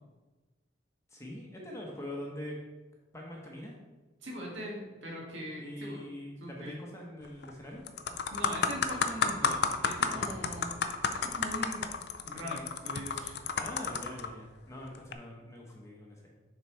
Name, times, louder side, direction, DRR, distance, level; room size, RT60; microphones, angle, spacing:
voice 1, 1.1-2.5 3.1-3.7 5.6-7.8 10.1-10.8 13.5-16.3, left 1 dB, 15° left, -1 dB, 1.0 m, -43 dB
voice 2, 4.2-6.0 6.4-6.8 8.3-10.7 11.1-11.9 12.2-13.4, equal, 70° right, -3 dB, 1.9 m, -41 dB
sound 1, 7.2-7.5 7.9-14.3 15.0-15.1, left 5 dB, 55° left, 0.4 m, -31 dB
6.8 x 4.0 x 4.5 m, 1.2 s
head